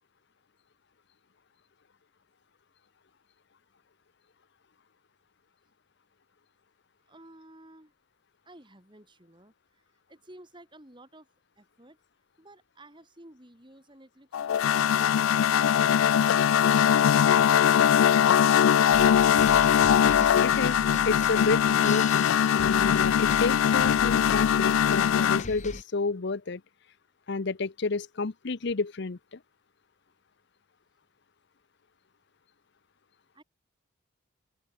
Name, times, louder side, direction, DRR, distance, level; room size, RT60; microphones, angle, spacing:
voice 1, 7.1-7.9 8.4-9.8 10.1-11.3 11.6-12.0 12.4-15.5 33.3-33.4, right 1 dB, 25° right, 4.4 m, -53 dB
sound 1, 14.3-25.4, left 9 dB, 80° left, 0.3 m, -21 dB
sound 2, 18.9-25.8, left 3 dB, 35° left, 1.3 m, -39 dB
voice 2, 20.4-20.8 21.0-26.6 27.3-29.4, left 3 dB, 55° left, 0.7 m, -30 dB
open air
head